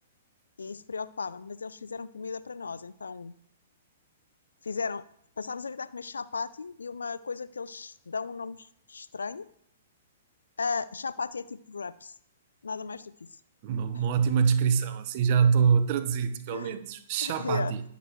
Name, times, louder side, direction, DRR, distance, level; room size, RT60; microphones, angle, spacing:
voice 1, 0.6-3.3 4.6-5.0 5.4-9.5 10.6-12.1 12.6-13.1 13.9-14.0 16.5-16.8 17.2-17.7, left 5 dB, 75° left, 0.5 m, -35 dB
voice 2, 13.6-17.8, right 6 dB, 45° right, 1.2 m, -25 dB
20.0 x 6.8 x 3.2 m
figure-of-eight pair, 115°, 0 cm